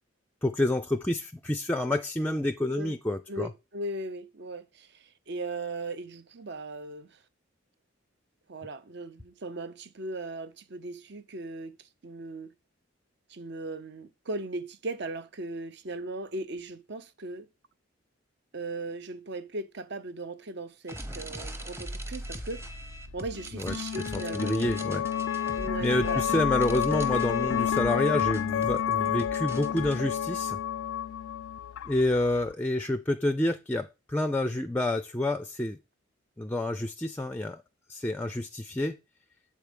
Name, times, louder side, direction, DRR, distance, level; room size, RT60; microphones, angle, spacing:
voice 1, 0.4-3.5 23.5-23.7 24.1-25.1 25.4-30.6 31.9-35.8 36.4-37.6 37.9-39.0, left 1 dB, 10° left, 0.4 m, -28 dB
voice 2, 3.3-7.2 8.5-11.7 12.0-12.5 13.3-17.5 18.5-22.7 23.1-24.5 25.5-26.3, right 2 dB, 55° right, 0.7 m, -38 dB
sound 1, 20.9-30.0, right 1 dB, 15° right, 0.8 m, -40 dB
sound 2, 22.2-32.5, left 9 dB, 90° left, 0.3 m, -30 dB
7.3 x 4.7 x 5.1 m
head